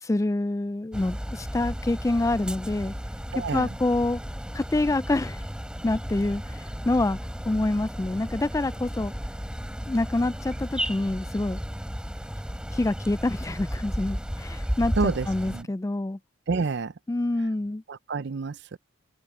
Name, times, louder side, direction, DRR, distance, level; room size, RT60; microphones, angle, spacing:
voice 1, 0.0-2.9 3.5-4.2 4.5-5.4 5.8-7.2 7.5-9.1 9.9-11.6 12.7-16.2 17.1-17.8, left 2 dB, 15° left, 0.3 m, -26 dB
sound 1, 0.9-15.6, equal, 5° right, 3.9 m, -34 dB
voice 2, 3.3-3.7 15.0-15.7 16.5-16.9 17.9-18.8, right 4 dB, 55° right, 0.5 m, -28 dB
open air
head